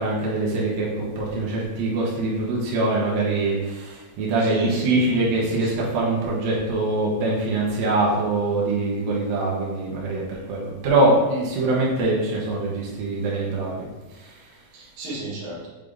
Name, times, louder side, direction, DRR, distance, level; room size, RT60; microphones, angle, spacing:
voice 1, 0.0-13.8 14.1-14.5, right 2 dB, 85° right, -5 dB, 2.0 m, -23 dB
voice 2, 4.4-5.7 14.7-15.7, right 2 dB, 65° right, -5 dB, 2.5 m, -34 dB
7.6 x 4.9 x 2.6 m, 1.1 s
omnidirectional pair, 5.8 m